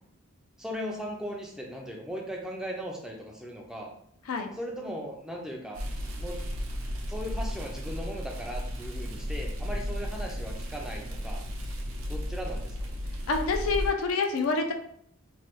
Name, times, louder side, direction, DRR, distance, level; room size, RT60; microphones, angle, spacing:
voice 1, 0.6-3.9 4.5-5.8 6.2-6.4 7.1-11.4 12.1-12.9, equal, 5° right, -1 dB, 0.4 m, -38 dB
sound 1, 5.7-13.9, equal, 75° right, 0.6 m, -34 dB
voice 2, 13.3-14.7, left 4 dB, 80° left, 4 dB, 0.5 m, -27 dB
3.1 x 2.2 x 3.0 m, 0.69 s
head